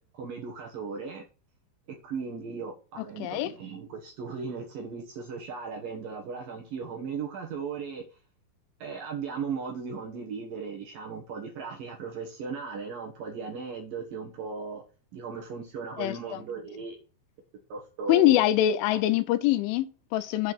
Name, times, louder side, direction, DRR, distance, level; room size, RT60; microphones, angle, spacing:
voice 1, 0.1-1.2 1.9-8.0 8.8-14.8 15.1-17.0 17.7-18.4 18.9-19.1, right 5 dB, 65° right, 2.4 m, -37 dB
voice 2, 3.2-3.5 16.0-16.4 18.1-20.5, left 13 dB, 80° left, 2.9 m, -24 dB
8.2 x 4.3 x 7.0 m
omnidirectional pair, 5.6 m